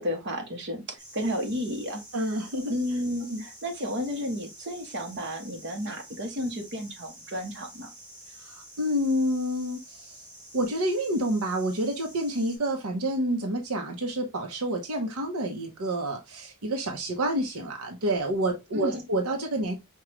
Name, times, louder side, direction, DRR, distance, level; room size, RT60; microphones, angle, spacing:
voice 1, 0.0-2.0 2.7-7.9 18.7-19.0, equal, 55° right, 0.9 m, -32 dB
sound 1, 1.0-12.6, right 1 dB, 20° right, 1.5 m, -49 dB
voice 2, 2.1-2.7 3.3-3.4 8.4-10.2 10.5-19.7, right 1 dB, 85° right, 0.8 m, -28 dB
4.8 x 2.3 x 2.9 m
head